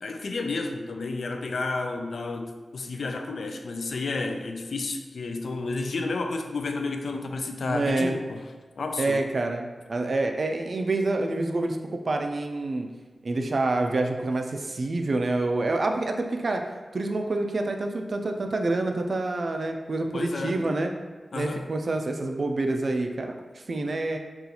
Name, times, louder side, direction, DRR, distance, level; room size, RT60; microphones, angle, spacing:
voice 1, 0.0-8.4 8.8-9.2 20.1-20.6 21.3-21.6, left 3 dB, 75° left, 5 dB, 0.3 m, -31 dB
voice 2, 7.7-8.2 9.0-11.8 12.1-12.9 13.2-16.6 16.9-20.9 21.3-24.2, right 2 dB, 50° right, 4 dB, 0.3 m, -27 dB
3.8 x 2.4 x 2.8 m, 1.3 s
wide cardioid pair, 125°, 0 cm